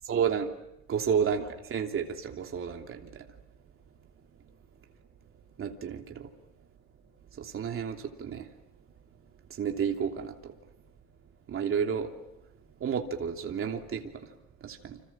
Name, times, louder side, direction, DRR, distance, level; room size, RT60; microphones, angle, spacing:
voice 1, 0.1-0.5 0.9-3.2 5.6-6.3 7.4-8.5 9.6-10.5 11.5-12.1 12.8-14.3 14.6-15.0, right 7 dB, 45° right, 3 dB, 3.2 m, -31 dB
30.0 x 26.0 x 7.5 m, 0.84 s
cardioid pair, 150°, 31 cm